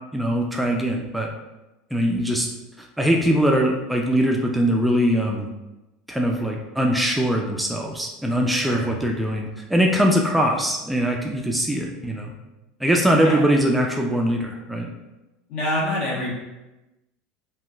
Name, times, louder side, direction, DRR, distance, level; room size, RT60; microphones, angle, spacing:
voice 1, 0.1-1.3 1.9-2.5 2.8-5.5 6.1-12.3 12.8-14.9, equal, 5° right, 0 dB, 0.4 m, -22 dB
voice 2, 15.5-16.3, left 1 dB, 60° left, -4 dB, 1.1 m, -26 dB
3.6 x 2.2 x 2.4 m, 1.0 s
hypercardioid pair, 80°, 0 cm